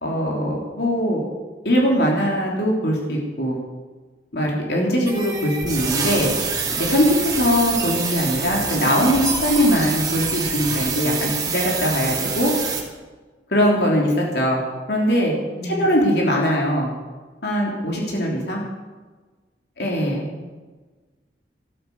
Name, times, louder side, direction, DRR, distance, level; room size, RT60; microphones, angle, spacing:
voice 1, 0.0-1.2 1.6-3.6 4.3-6.3 6.8-12.5 13.5-14.6 14.9-15.3 15.6-16.9 17.4-18.6 19.8-20.2, equal, 70° left, -2 dB, 3.3 m, -21 dB
sound 1, 5.1-12.8, right 5 dB, 20° right, 2.4 m, -26 dB
voice 2, 15.5-15.8 20.3-20.5, left 1 dB, 40° left, 1 dB, 3.6 m, -33 dB
14.0 x 12.5 x 7.1 m, 1.3 s
head